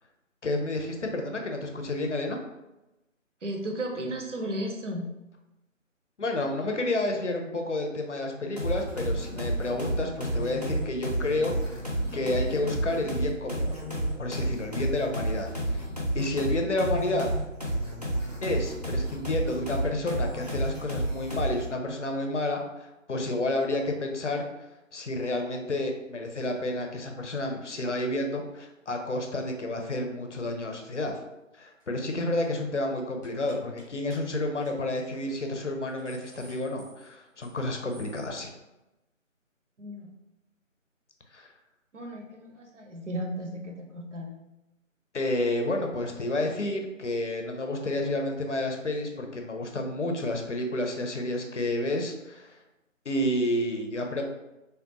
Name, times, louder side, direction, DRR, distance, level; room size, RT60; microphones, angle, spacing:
voice 1, 0.4-2.4 6.2-11.9 12.1-13.8 14.2-15.9 16.1-17.3 18.4-24.5 24.9-31.1 31.6-38.5 41.3-41.5 45.1-52.5 53.1-54.2, left 1 dB, 60° left, 3 dB, 0.6 m, -30 dB
voice 2, 3.4-5.1 39.8-40.1 41.9-44.4, right 1 dB, 65° right, 2 dB, 0.7 m, -34 dB
sound 1, 8.6-21.7, right 1 dB, 30° right, 0.5 m, -31 dB
sound 2, 31.8-32.0 32.3-32.6 33.2-33.8 34.1-34.2 34.6-34.7 35.1-35.2 35.7-37.6 37.9-38.3, right 1 dB, 15° left, 0.9 m, -54 dB
3.3 x 2.3 x 2.8 m, 0.96 s
figure-of-eight pair, 155°, 40 cm